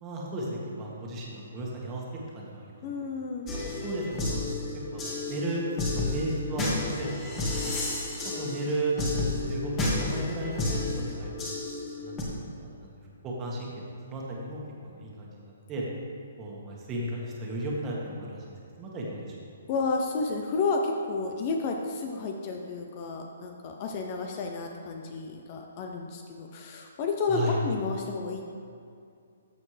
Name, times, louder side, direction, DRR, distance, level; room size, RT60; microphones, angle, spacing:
voice 1, 0.0-2.0 2.3-2.8 3.6-5.7 6.0-7.4 7.6-7.7 8.2-11.3 12.0-12.2 12.4-12.9 13.2-13.7 14.1-15.9 16.4-18.4 18.8-19.4 27.3-27.6, right 1 dB, 20° right, -3 dB, 1.6 m, -35 dB
voice 2, 2.8-3.5 19.7-28.4, left 4 dB, 35° left, 2 dB, 0.7 m, -31 dB
sound 1, 3.5-12.2, left 2 dB, 20° left, 1.5 m, -31 dB
13.5 x 6.5 x 3.4 m, 2.4 s
hypercardioid pair, 160°, 0 cm